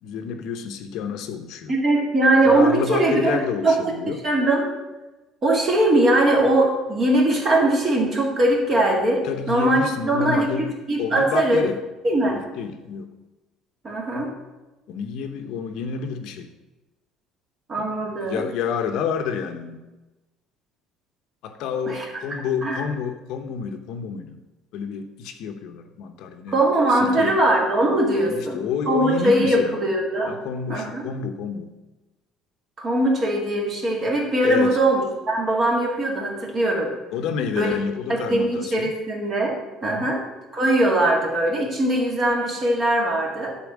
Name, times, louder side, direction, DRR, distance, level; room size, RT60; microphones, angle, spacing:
voice 1, 0.0-1.7 2.4-4.2 9.2-10.7 11.0-11.8 12.6-13.1 14.9-16.5 17.7-17.9 18.2-19.8 21.4-24.4 24.7-26.6 26.9-27.4 28.1-29.8 30.3-31.7 34.4-34.8 37.1-38.9 39.8-40.1, left 6 dB, 65° left, 7 dB, 0.9 m, -29 dB
voice 2, 1.7-3.8 4.1-4.7 5.4-11.6 12.0-12.4 13.8-14.3 17.7-18.4 21.9-22.1 22.6-22.9 26.5-28.6 28.9-30.3 30.7-31.1 32.8-36.9 37.5-37.7 38.1-40.2 40.5-43.6, right 1 dB, 25° right, 0 dB, 2.1 m, -21 dB
10.5 x 4.5 x 7.4 m, 1.1 s
cardioid pair, 160°, 0 cm